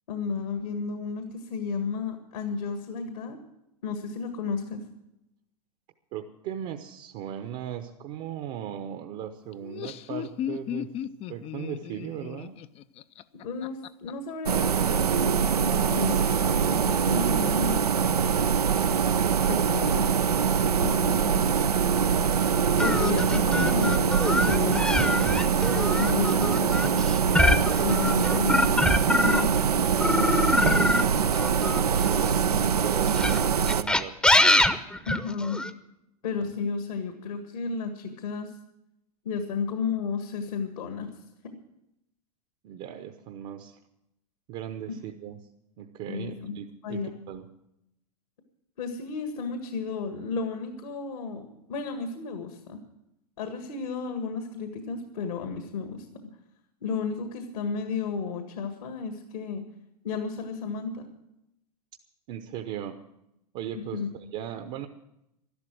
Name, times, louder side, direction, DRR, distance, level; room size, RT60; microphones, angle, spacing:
voice 1, 0.1-3.4 3.8-4.9 13.4-17.8 19.4-20.2 20.8-21.5 22.8-27.1 27.8-28.7 29.2-29.6 30.0-31.3 35.1-35.6 36.2-38.5 39.3-41.1 44.9-45.0 46.1-46.5 46.8-47.1 48.8-52.8 53.4-56.3 56.8-59.7 60.0-61.1 63.7-64.1, left 5 dB, 70° left, 6 dB, 1.8 m, -33 dB
voice 2, 6.1-10.9 11.3-12.6 31.7-34.3 42.6-43.8 44.5-45.4 45.8-47.0 47.3-47.5 62.3-63.0 63.5-64.9, right 10 dB, 45° right, 6 dB, 1.0 m, -37 dB
Laughter, 9.5-14.1, left 10 dB, 30° left, 0.5 m, -36 dB
sound 1, 14.4-33.8, right 7 dB, 85° right, 0.6 m, -24 dB
sound 2, 22.8-29.6 30.0-32.4 33.1-35.7, left 1 dB, 5° left, 0.8 m, -24 dB
13.0 x 11.5 x 7.7 m, 0.84 s
hypercardioid pair, 95°, 19 cm